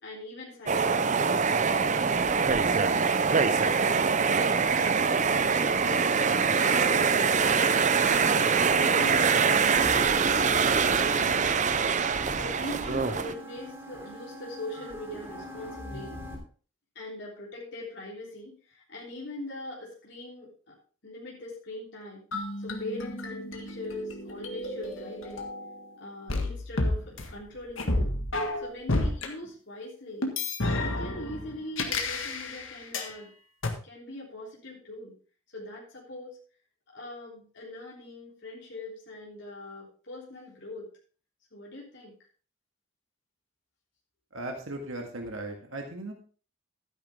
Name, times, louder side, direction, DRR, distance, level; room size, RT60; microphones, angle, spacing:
voice 1, 0.0-4.0 4.4-7.4 8.1-11.4 12.4-16.2 17.0-20.8 21.0-22.2 22.6-25.5 26.0-28.1 28.6-30.3 30.8-33.3 33.8-35.1 35.5-36.4 36.9-40.9 41.5-42.1, left 1 dB, 55° left, -4 dB, 3.6 m, -42 dB
sound 1, 0.7-13.3, right 5 dB, 35° right, 0.6 m, -24 dB
sound 2, 8.6-16.3, equal, 10° right, 3.4 m, -40 dB
sound 3, 22.3-25.8 26.3-29.3 30.2-33.1 33.6-33.7, left 2 dB, 75° left, 1.8 m, -31 dB
voice 2, 44.3-46.1, right 2 dB, 80° right, 2 dB, 1.9 m, -37 dB
12.5 x 10.0 x 3.6 m, 0.39 s
head